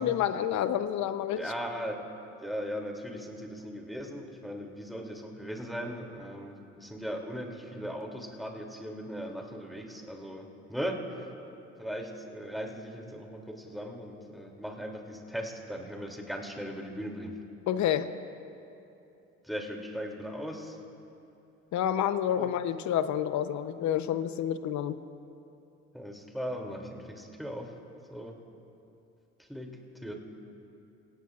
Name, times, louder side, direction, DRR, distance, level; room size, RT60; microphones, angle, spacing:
voice 1, 0.0-1.5 17.7-18.1 21.7-25.0, left 10 dB, 60° left, 11 dB, 0.8 m, -29 dB
voice 2, 1.3-2.1 2.4-11.0 11.8-17.4 19.4-20.8 22.4-22.5 25.9-27.7 28.1-28.4 29.4-30.1, equal, ahead, 1 dB, 2.9 m, -38 dB
28.5 x 17.5 x 2.5 m, 2.9 s
hypercardioid pair, 65°, 33 cm